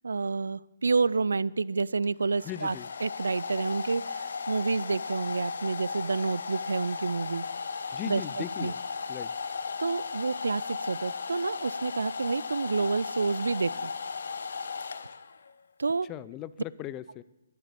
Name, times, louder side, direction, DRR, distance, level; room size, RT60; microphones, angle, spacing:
voice 1, 0.0-7.4 8.0-8.7 9.8-13.9 15.8-16.1, right 4 dB, 75° right, 22 dB, 0.4 m, -29 dB
Domestic sounds home sounds, 1.8-15.5, left 5 dB, 65° left, 0.8 m, -36 dB
voice 2, 2.5-2.9 7.9-8.8 9.1-9.3 16.1-17.2, left 12 dB, 25° left, 16 dB, 0.6 m, -38 dB
11.5 x 11.0 x 8.4 m, 0.99 s
figure-of-eight pair, 135°, 0 cm